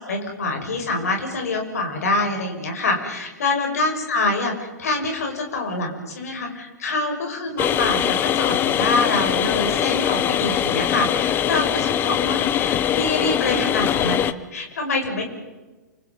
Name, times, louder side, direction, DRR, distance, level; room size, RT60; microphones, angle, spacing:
voice 1, 0.0-14.2 14.5-15.2, left 2 dB, 60° left, 3 dB, 6.8 m, -25 dB
sound 1, 7.6-14.3, left 10 dB, 20° left, 1.0 m, -22 dB
29.0 x 27.0 x 5.7 m, 1.2 s
figure-of-eight pair, 105°, 9 cm